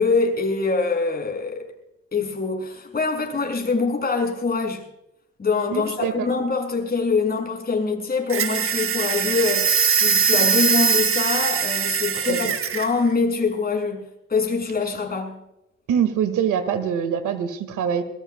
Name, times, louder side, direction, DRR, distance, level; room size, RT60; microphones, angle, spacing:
voice 1, 0.0-1.7 2.1-4.8 5.4-14.0 14.3-15.4, left 4 dB, 30° left, 6.5 m, -24 dB
voice 2, 5.7-6.3 12.3-12.5 15.9-18.0, right 8 dB, 80° right, 2.0 m, -24 dB
sound 1, 8.3-12.9, right 6 dB, 45° right, 1.2 m, -21 dB
21.5 x 20.5 x 2.3 m
cardioid pair, 90°, 30 cm